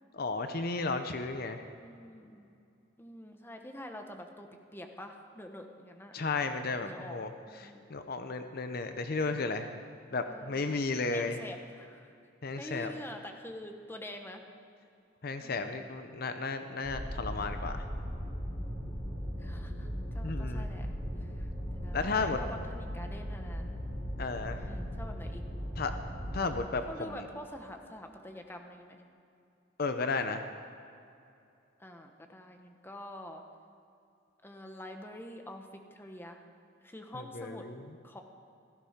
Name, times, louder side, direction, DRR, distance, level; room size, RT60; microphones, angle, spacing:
voice 1, 0.1-1.6 6.1-7.3 7.6-9.7 10.1-11.4 12.4-12.9 15.2-17.8 20.2-20.7 21.9-22.4 24.2-24.7 25.8-25.9 26.3-27.2 29.8-30.5 37.1-37.8, left 3 dB, 50° left, 8 dB, 0.7 m, -34 dB
voice 2, 1.7-2.5 3.0-6.2 6.8-7.2 7.5-8.0 10.2-10.8 11.1-12.1 12.6-14.4 18.9-20.9 21.2-21.5 21.7-23.8 24.5-25.4 26.9-29.0 31.8-33.4 34.4-36.4 36.8-37.7 38.0-38.2, left 1 dB, 10° left, 4 dB, 1.0 m, -46 dB
sound 1, 16.8-26.4, equal, 30° left, 4.5 m, -38 dB
16.0 x 13.5 x 5.1 m, 2.6 s
head